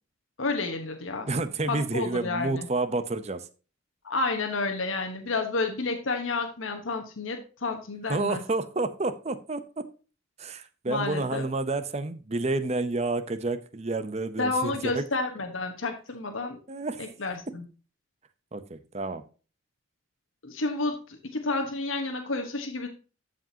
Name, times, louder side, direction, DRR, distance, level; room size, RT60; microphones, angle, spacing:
voice 1, 0.4-1.3 1.7-2.7 4.0-8.4 10.9-11.4 14.4-16.6 17.0-17.6 20.4-22.9, left 3 dB, 80° left, 4 dB, 1.2 m, -30 dB
voice 2, 1.3-3.5 8.1-9.8 10.4-15.0 16.7-17.0 18.5-19.2, right 2 dB, 35° right, 10 dB, 0.7 m, -30 dB
13.5 x 5.0 x 2.8 m, 0.35 s
head